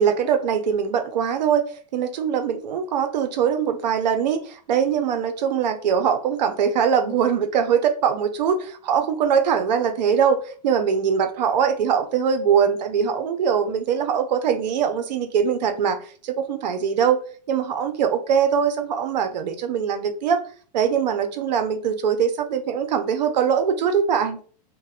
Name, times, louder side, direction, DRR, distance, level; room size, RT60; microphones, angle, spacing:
voice 1, 0.0-20.4 20.7-24.4, right 7 dB, 85° right, 7 dB, 0.7 m, -22 dB
2.5 x 2.2 x 4.0 m, 0.43 s
supercardioid pair, 135°, 21 cm